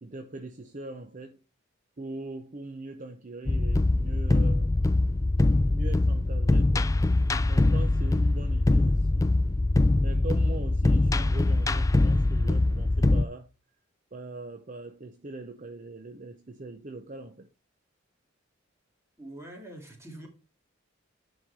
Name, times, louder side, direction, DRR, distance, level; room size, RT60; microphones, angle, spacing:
voice 1, 0.0-1.4 2.0-4.9 5.7-6.9 7.5-9.3 10.0-13.5 14.1-17.5, right 2 dB, 40° right, 0.8 m, -41 dB
sound 1, 3.5-13.2, left 2 dB, 15° left, 0.3 m, -23 dB
voice 2, 19.2-20.3, right 1 dB, 15° right, 2.6 m, -44 dB
10.0 x 4.6 x 4.7 m
head